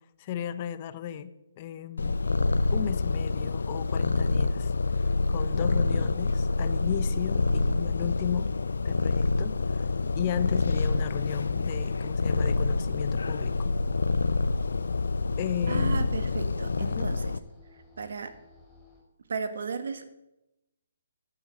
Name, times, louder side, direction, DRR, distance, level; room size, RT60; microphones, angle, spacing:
voice 1, 0.2-1.3 1.6-2.2 2.7-8.5 8.8-9.9 10.1-13.7 15.4-16.1 16.8-17.1, left 10 dB, 30° left, 13 dB, 0.8 m, -35 dB
Purr, 2.0-17.4, left 3 dB, 85° left, 0.7 m, -27 dB
sound 1, 9.2-19.0, left 2 dB, 10° left, 5.2 m, -54 dB
voice 2, 15.7-17.2 18.0-18.3 19.3-20.0, right 5 dB, 65° right, 10 dB, 1.7 m, -34 dB
13.5 x 7.8 x 7.5 m, 0.94 s
hypercardioid pair, 155°, 0 cm